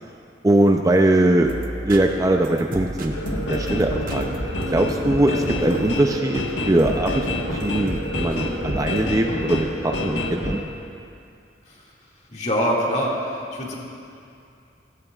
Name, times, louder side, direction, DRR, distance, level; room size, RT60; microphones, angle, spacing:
voice 1, 0.4-1.5 1.8-4.3 4.7-7.3 7.5-10.6, right 1 dB, 20° right, 3 dB, 0.5 m, -21 dB
sound 1, 1.4-9.1, right 1 dB, 50° right, 0.8 m, -34 dB
sound 2, 3.1-10.6, left 1 dB, 85° left, 1.4 m, -28 dB
voice 2, 12.3-13.7, equal, 40° left, -4 dB, 2.1 m, -24 dB
16.5 x 16.0 x 2.4 m, 2.5 s
head